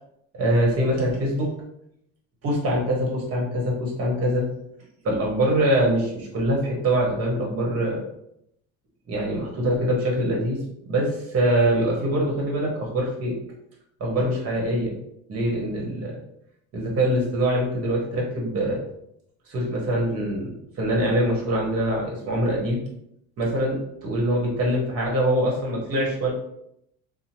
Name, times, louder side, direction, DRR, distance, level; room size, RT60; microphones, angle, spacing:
voice 1, 0.3-1.5 2.4-4.5 5.0-8.0 9.1-10.6 10.9-13.3 14.0-14.9 15.3-16.1 16.7-18.8 19.5-22.8 23.4-23.8 24.0-26.3, right 1 dB, 50° right, -2 dB, 1.2 m, -24 dB
2.9 x 2.2 x 2.8 m, 0.76 s
cardioid pair, 110°, 30 cm